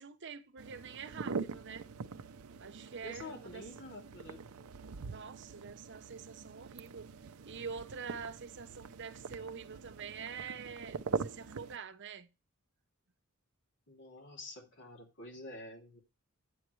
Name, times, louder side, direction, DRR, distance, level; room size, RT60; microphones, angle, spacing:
voice 1, 0.0-1.8 2.6-4.0 5.0-7.1 7.4-12.3, right 6 dB, 55° right, 0.9 m, -46 dB
sound 1, 0.6-11.8, right 5 dB, 80° right, 0.6 m, -43 dB
voice 2, 3.0-4.4 13.9-16.0, left 1 dB, 55° left, 2.9 m, -48 dB
9.2 x 7.8 x 3.1 m
head